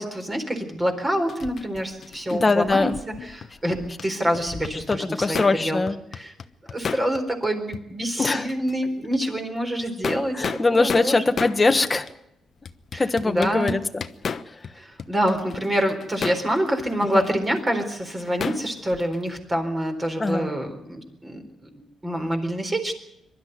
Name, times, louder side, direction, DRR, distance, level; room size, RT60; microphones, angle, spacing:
voice 1, 0.0-2.9 3.2-3.8 4.0-5.8 6.1-6.3 6.7-11.2 12.9-13.7 14.7-21.4 21.7-22.9, equal, 15° right, 5 dB, 4.1 m, -26 dB
sound 1, 1.3-4.1 4.3-5.6 5.9-7.5 7.7-7.8 8.2-8.8 9.1-9.2 9.8-11.6 12.1-12.2 12.7-14.7 15.0-19.4, left 6 dB, 45° left, 1.0 m, -33 dB
voice 2, 2.3-3.0 4.9-6.0 8.2-8.5 10.3-12.1 13.0-14.0 17.1-17.2 20.2-20.5, left 3 dB, 20° left, 8 dB, 1.5 m, -22 dB
23.0 x 12.5 x 9.4 m, 0.80 s
cardioid pair, 125°, 0 cm